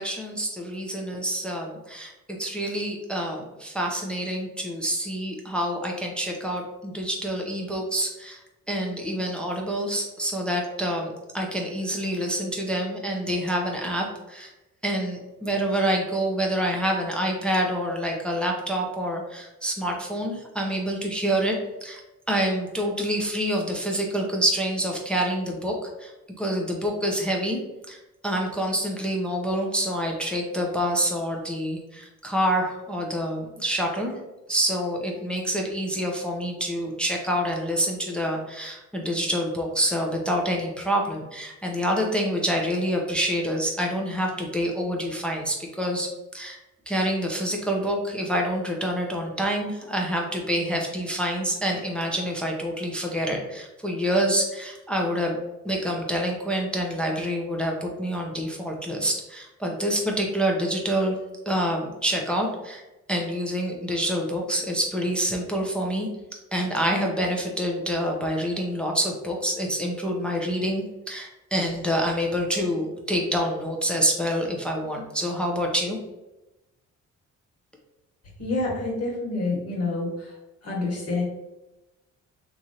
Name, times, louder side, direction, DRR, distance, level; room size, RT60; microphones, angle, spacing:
voice 1, 0.0-14.5 14.8-21.6 21.8-22.0 22.3-26.1 26.4-27.6 27.9-34.1 34.5-46.6 46.9-55.4 55.6-61.1 61.5-62.8 63.1-66.1 66.5-76.0, equal, 5° left, 0 dB, 0.5 m, -27 dB
voice 2, 78.4-80.3 80.6-81.2, left 2 dB, 55° left, -3 dB, 1.3 m, -28 dB
3.0 x 2.5 x 2.7 m, 1.0 s
cardioid pair, 90°, 30 cm